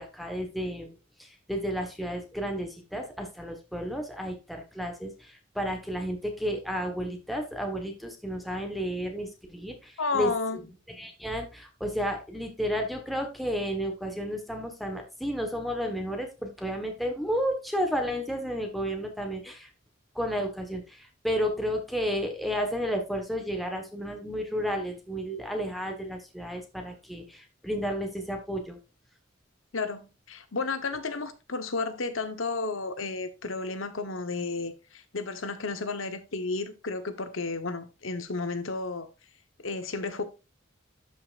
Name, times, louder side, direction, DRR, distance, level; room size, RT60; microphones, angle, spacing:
voice 1, 0.0-10.3 10.9-19.7 20.1-28.8, equal, ahead, 1.3 m, -32 dB
voice 2, 10.0-10.6 29.7-39.1 39.6-40.2, left 3 dB, 75° left, 1.1 m, -32 dB
12.5 x 5.8 x 2.5 m
head